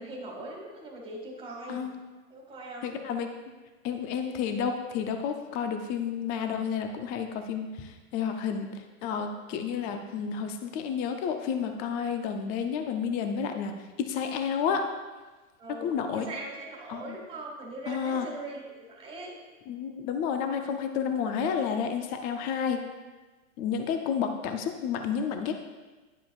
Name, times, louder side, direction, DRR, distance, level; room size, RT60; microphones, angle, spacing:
voice 1, 0.0-1.9 2.3-3.0 15.6-19.3, right 2 dB, 15° right, -2 dB, 1.9 m, -41 dB
voice 2, 1.7-2.0 2.8-3.3 3.8-14.8 15.7-16.3 16.9-17.2 17.9-18.3 19.7-22.8 23.6-25.5, left 7 dB, 20° left, 6 dB, 0.4 m, -31 dB
10.5 x 7.3 x 2.4 m, 1.3 s
hypercardioid pair, 135°, 42 cm